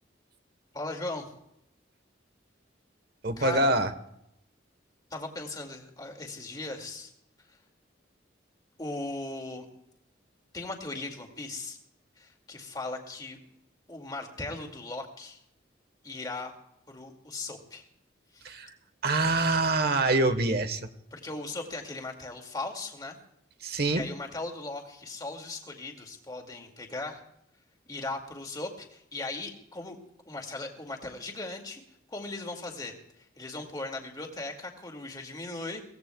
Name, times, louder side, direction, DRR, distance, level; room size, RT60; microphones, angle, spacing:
voice 1, 0.7-1.3 3.4-3.7 5.1-7.1 7.5-7.6 8.8-9.7 10.5-11.8 12.2-13.4 13.9-15.4 16.0-16.5 16.9-17.9 18.3-18.5 21.1-23.2 23.7-27.2 27.9-30.0 30.3-31.8 32.1-35.8, left 2 dB, 20° left, 1 dB, 2.2 m, -38 dB
voice 2, 3.2-3.9 18.4-18.7 19.0-20.9 23.6-24.0, right 2 dB, 55° right, 10 dB, 1.2 m, -25 dB
23.0 x 17.5 x 2.3 m, 0.78 s
head